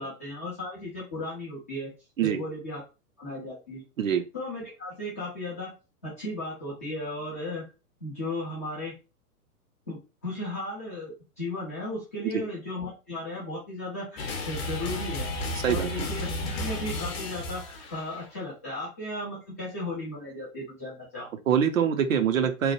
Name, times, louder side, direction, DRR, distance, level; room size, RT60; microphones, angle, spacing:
voice 1, 0.0-1.9 2.2-2.8 3.2-3.8 4.3-5.7 6.0-7.6 8.0-8.9 9.9-15.3 15.7-21.3, left 1 dB, 10° left, -8 dB, 0.4 m, -35 dB
sound 1, 14.2-18.3, left 1 dB, 40° left, 0.8 m, -33 dB
voice 2, 15.6-16.1 21.5-22.7, right 8 dB, 60° right, 8 dB, 0.6 m, -24 dB
2.9 x 2.1 x 2.9 m, 0.29 s
figure-of-eight pair, 110°, 46 cm